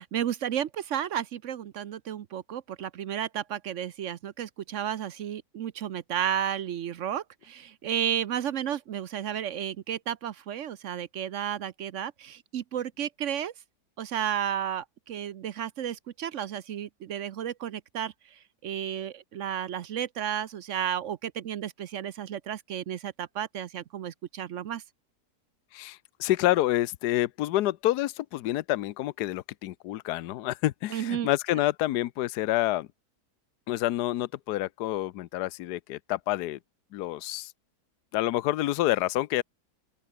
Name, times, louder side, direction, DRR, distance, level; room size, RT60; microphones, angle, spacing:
voice 1, 0.0-13.5 14.0-18.1 18.6-24.8 30.9-31.3, right 10 dB, 60° right, 0.9 m, -32 dB
voice 2, 25.7-32.9 33.7-36.6 36.9-37.5 38.1-39.4, left 15 dB, 75° left, 1.2 m, -28 dB
open air
omnidirectional pair, 1.8 m